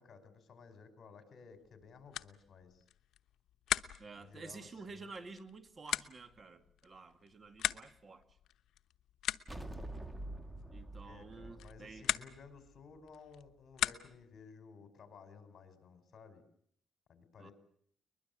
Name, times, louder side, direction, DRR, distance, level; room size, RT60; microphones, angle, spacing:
voice 1, 0.0-2.8 4.1-5.1 9.6-9.9 10.9-16.4 17.1-17.5, left 5 dB, 50° left, 9 dB, 5.3 m, -56 dB
sound 1, 1.6-14.4, left 11 dB, 75° left, 0.9 m, -42 dB
voice 2, 4.0-8.2 10.7-12.1 17.4-17.5, right 3 dB, 35° right, 10 dB, 2.2 m, -51 dB
sound 2, 9.5-12.9, right 1 dB, 10° right, 2.1 m, -46 dB
22.0 x 21.5 x 8.2 m, 0.66 s
cardioid pair, 90°, 0 cm